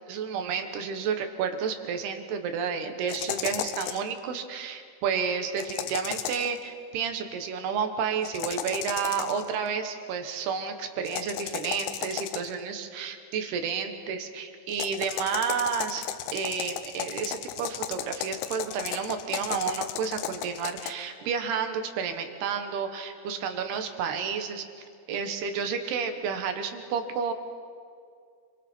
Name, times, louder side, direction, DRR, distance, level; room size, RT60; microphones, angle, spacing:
voice 1, 0.1-24.6 25.1-27.3, right 6 dB, 70° right, 7 dB, 3.1 m, -31 dB
sound 1, 3.1-4.1 5.6-6.6 8.2-9.5 11.1-12.6 14.7-20.9, left 11 dB, 90° left, 3.3 m, -35 dB
29.0 x 23.5 x 4.5 m, 2.2 s
omnidirectional pair, 5.4 m